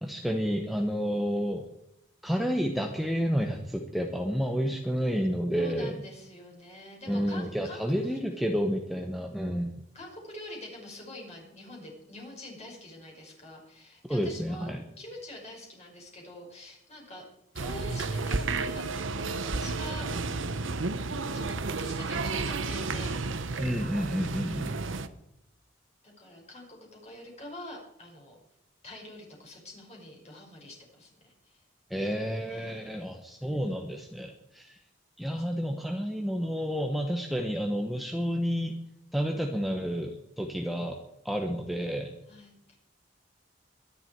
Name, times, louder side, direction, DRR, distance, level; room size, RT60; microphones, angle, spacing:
voice 1, 0.0-1.7 2.2-6.0 7.1-9.8 14.1-14.8 23.6-24.8 31.9-34.7 35.2-38.7 39.1-40.1 40.4-40.9 41.2-42.1, equal, ahead, 2 dB, 1.2 m, -30 dB
voice 2, 5.5-8.4 9.9-17.2 17.5-20.1 21.3-23.6 26.0-28.4 28.8-31.6 32.4-33.1 42.3-42.8, left 1 dB, 35° left, 0 dB, 5.7 m, -46 dB
sound 1, 17.6-25.1, right 3 dB, 80° right, 1.0 m, -32 dB
23.5 x 11.0 x 4.7 m, 0.79 s
head